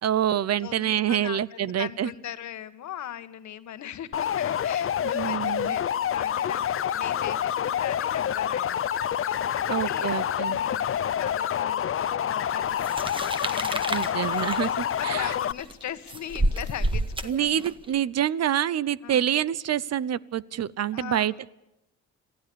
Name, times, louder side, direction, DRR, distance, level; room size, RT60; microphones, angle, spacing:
voice 1, 0.0-2.1 5.0-5.8 9.7-10.6 13.9-15.3 17.2-21.5, right 10 dB, 55° right, 20 dB, 0.8 m, -27 dB
voice 2, 0.6-10.2 10.5-12.8 13.4-14.2 14.6-17.7 19.0-19.3 20.9-21.4, left 11 dB, 70° left, 12 dB, 1.6 m, -39 dB
sound 1, 4.1-15.5, left 9 dB, 45° left, 0.8 m, -27 dB
sound 2, 12.8-17.9, right 1 dB, 15° right, 1.8 m, -30 dB
27.0 x 15.5 x 7.0 m, 0.93 s
cardioid pair, 90°, 30 cm